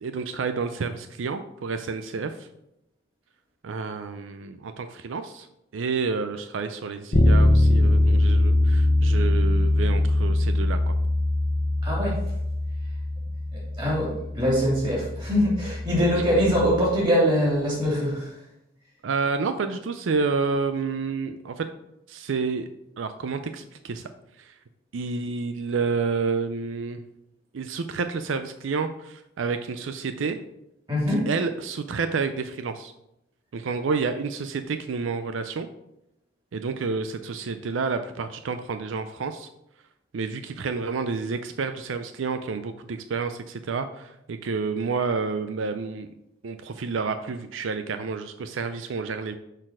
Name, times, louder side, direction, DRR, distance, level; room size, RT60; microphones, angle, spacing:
voice 1, 0.0-2.5 3.6-5.5 5.7-10.9 16.2-16.3 19.0-21.7 22.1-22.7 23.0-24.1 24.4-24.5 24.9-27.0 27.5-30.4 31.1-32.9 33.5-35.7 36.5-39.5 40.1-46.1 46.4-49.4, right 4 dB, 80° right, 9 dB, 0.4 m, -29 dB
Bass guitar, 7.1-16.9, left 1 dB, 40° left, 0.9 m, -22 dB
voice 2, 11.8-12.2 13.8-18.3 30.9-31.3, equal, 25° right, -5 dB, 3.0 m, -23 dB
6.5 x 4.0 x 6.1 m, 0.83 s
head